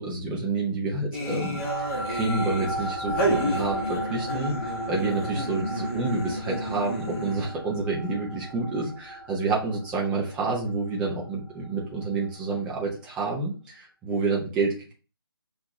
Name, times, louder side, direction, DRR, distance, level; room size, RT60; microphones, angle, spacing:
voice 1, 0.0-1.7 2.1-14.9, right 3 dB, 5° right, -3 dB, 0.6 m, -29 dB
sound 1, 1.1-7.6, equal, 25° left, 1.4 m, -31 dB
sound 2, 1.2-12.0, right 1 dB, 50° left, 1.0 m, -36 dB
5.7 x 2.5 x 2.9 m, 0.36 s
figure-of-eight pair, 145°, 13 cm